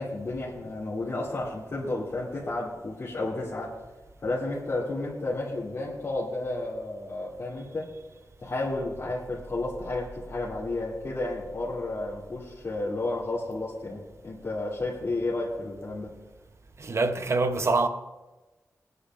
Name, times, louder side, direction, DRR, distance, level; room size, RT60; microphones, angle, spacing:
voice 1, 0.0-3.8 4.2-7.9 8.4-16.1, left 2 dB, 50° left, 2.5 m, -32 dB
voice 2, 16.8-17.9, right 3 dB, 50° right, 0.7 m, -25 dB
21.5 x 9.9 x 2.5 m
wide cardioid pair, 135°, 6 cm